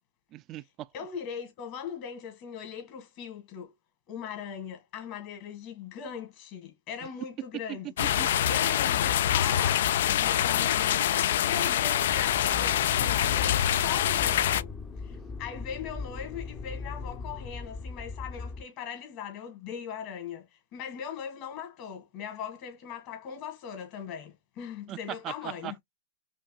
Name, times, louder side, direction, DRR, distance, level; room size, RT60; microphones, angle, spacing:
voice 1, 0.3-0.9 7.7-8.3 24.9-25.0 25.2-25.8, right 13 dB, 35° right, 0.3 m, -39 dB
voice 2, 0.9-3.7 4.1-7.9 8.5-11.0 11.4-14.7 15.0-25.7, left 7 dB, 45° left, 1.9 m, -40 dB
sound 1, 8.0-14.6, left 11 dB, 70° left, 0.3 m, -25 dB
Motor vehicle (road), 12.0-18.6, left 4 dB, 20° left, 0.6 m, -39 dB
5.2 x 2.6 x 2.3 m
hypercardioid pair, 125°, 0 cm